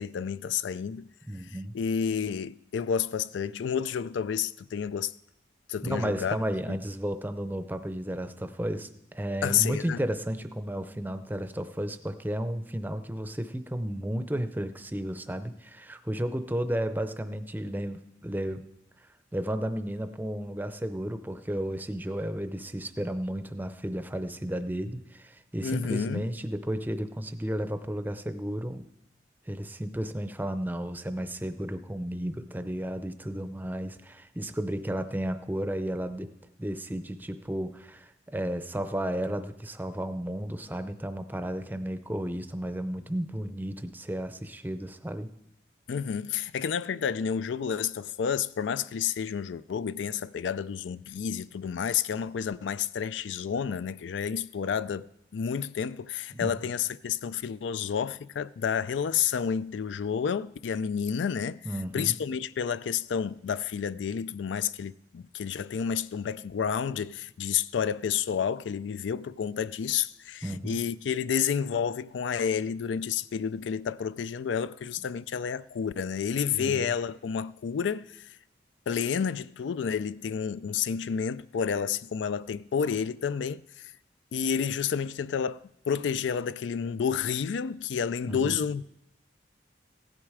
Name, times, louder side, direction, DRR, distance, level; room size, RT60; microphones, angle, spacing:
voice 1, 0.0-1.1 1.7-5.1 5.7-6.4 6.7-6.8 9.4-10.0 25.6-26.3 45.9-61.6 61.9-78.2 78.9-83.9 84.3-88.8, left 7 dB, 85° left, 0.4 m, -30 dB
voice 2, 1.3-1.7 5.8-18.6 19.3-28.9 29.5-36.3 36.6-45.3 56.3-56.7 61.6-62.2 70.4-70.8 76.6-76.9 88.3-88.6, right 1 dB, 10° right, 0.6 m, -33 dB
16.0 x 10.5 x 4.9 m
head